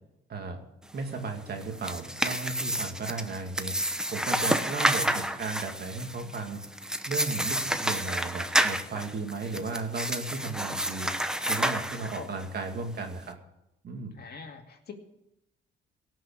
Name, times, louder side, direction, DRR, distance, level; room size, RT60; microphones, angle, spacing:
voice 1, 0.9-3.7 4.1-6.6 7.1-11.1 11.5-13.4 13.8-14.2, right 4 dB, 50° right, 4 dB, 2.4 m, -35 dB
sound 1, 1.6-12.5, right 1 dB, 5° right, 0.9 m, -30 dB
voice 2, 4.2-4.7 12.2-12.3 14.2-14.9, left 5 dB, 55° left, 4 dB, 2.4 m, -44 dB
17.5 x 6.1 x 8.5 m, 0.85 s
cardioid pair, 90°, 20 cm